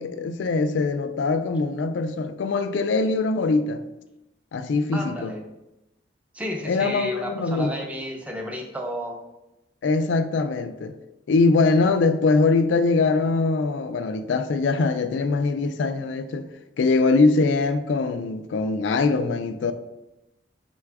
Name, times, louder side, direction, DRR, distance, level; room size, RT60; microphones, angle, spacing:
voice 1, 0.0-3.8 4.5-5.3 6.6-7.7 9.8-10.9 11.3-16.5 16.8-19.7, left 3 dB, 80° left, 0.3 m, -22 dB
voice 2, 4.9-5.5 6.3-9.2, left 1 dB, 10° right, 0.5 m, -32 dB
4.1 x 2.3 x 4.6 m
head